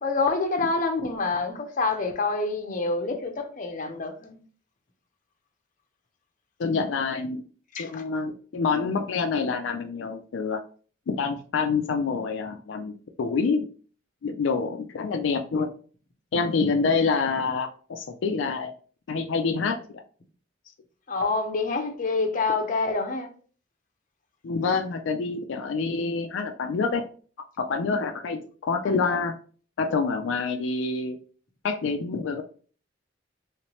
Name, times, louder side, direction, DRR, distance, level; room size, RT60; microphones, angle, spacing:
voice 1, 0.0-4.4 7.8-8.0 21.1-23.3 29.0-29.2, left 3 dB, 45° left, 0.6 m, -27 dB
voice 2, 6.6-7.4 7.7-10.6 11.1-13.7 14.2-15.7 16.3-18.7 19.1-20.0 24.4-27.0 27.6-29.3 29.8-31.2 31.6-32.4, left 4 dB, 80° left, 0.4 m, -27 dB
3.2 x 3.0 x 2.9 m
head